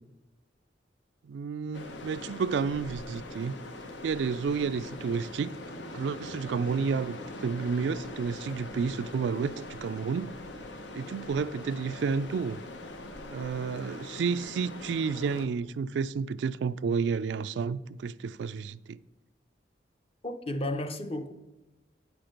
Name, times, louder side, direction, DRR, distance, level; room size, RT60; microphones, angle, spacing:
voice 1, 1.2-3.5 4.0-5.5 5.9-10.3 10.9-12.6 13.3-19.0, right 5 dB, 75° right, 0.3 m, -31 dB
sound 1, 1.7-15.5, left 2 dB, 85° left, 0.9 m, -42 dB
voice 2, 20.2-21.3, left 1 dB, 30° left, 0.6 m, -33 dB
8.6 x 6.0 x 5.0 m
head